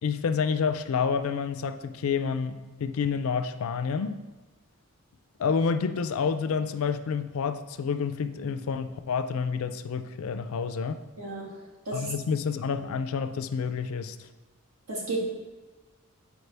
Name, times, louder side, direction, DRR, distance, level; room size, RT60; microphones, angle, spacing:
voice 1, 0.0-4.2 5.4-11.0 11.9-14.3, left 6 dB, 70° left, 11 dB, 0.4 m, -29 dB
voice 2, 11.2-12.1 14.9-15.3, right 2 dB, 85° right, -2 dB, 1.6 m, -33 dB
8.0 x 4.7 x 3.3 m, 1.2 s
head